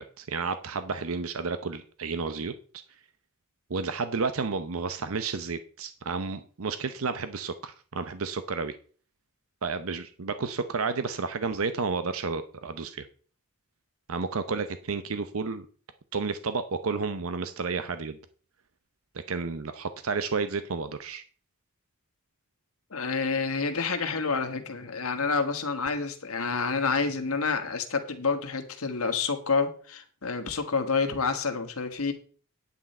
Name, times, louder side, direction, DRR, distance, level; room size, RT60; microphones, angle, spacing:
voice 1, 0.0-2.5 3.7-8.7 9.6-13.1 14.1-15.7 16.1-18.2 19.3-21.2, right 4 dB, 75° right, 11 dB, 0.7 m, -31 dB
voice 2, 22.9-32.1, left 4 dB, 80° left, 6 dB, 1.6 m, -28 dB
9.8 x 8.6 x 4.3 m, 0.42 s
head